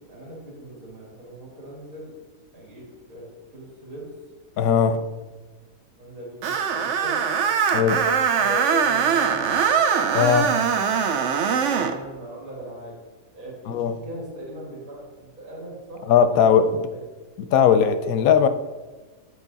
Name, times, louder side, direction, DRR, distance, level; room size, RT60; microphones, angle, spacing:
voice 1, 0.1-2.2 2.5-4.1 4.7-5.0 6.0-7.2 8.3-9.6 11.6-13.0 13.3-16.5 16.9-17.0, equal, 85° right, -4 dB, 2.7 m, -39 dB
voice 2, 4.6-5.0 7.7-8.0 10.1-10.5 13.7-13.9 16.1-16.7 17.5-18.5, left 7 dB, 85° left, 10 dB, 1.1 m, -18 dB
Screech, 6.4-12.0, right 7 dB, 65° right, 0.9 m, -22 dB
8.5 x 4.7 x 4.0 m, 1.3 s
omnidirectional pair, 1.5 m